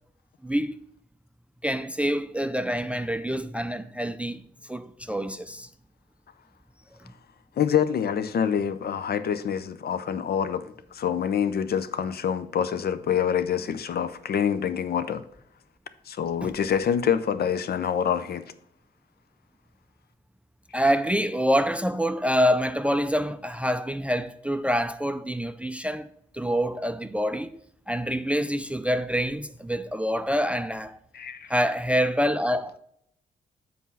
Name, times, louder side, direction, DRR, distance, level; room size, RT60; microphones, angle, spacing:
voice 1, 0.4-0.8 1.6-4.4 4.7-5.7 16.4-16.5 20.7-26.1 26.3-27.6 27.9-31.0 31.5-32.8, equal, 5° right, 0.5 m, -26 dB
voice 2, 7.6-15.2 16.1-18.5 31.1-31.5, left 8 dB, 50° left, 0.6 m, -26 dB
7.2 x 4.2 x 5.5 m
hypercardioid pair, 40°, 21 cm